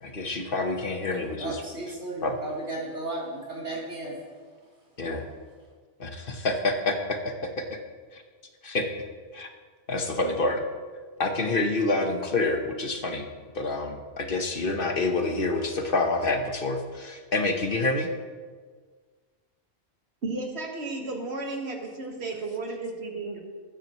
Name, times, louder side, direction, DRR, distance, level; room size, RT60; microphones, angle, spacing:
voice 1, 0.0-1.6 2.2-2.4 5.0-5.3 6.0-7.8 8.1-8.2 8.6-8.9 9.3-9.5 9.9-10.6 11.2-13.3 13.5-18.1, left 2 dB, 55° left, 5 dB, 1.3 m, -27 dB
voice 2, 1.4-4.2, right 2 dB, 90° right, -6 dB, 3.8 m, -34 dB
voice 3, 20.2-23.4, right 3 dB, 70° right, 2 dB, 1.9 m, -33 dB
20.5 x 9.0 x 3.1 m, 1.5 s
omnidirectional pair, 1.1 m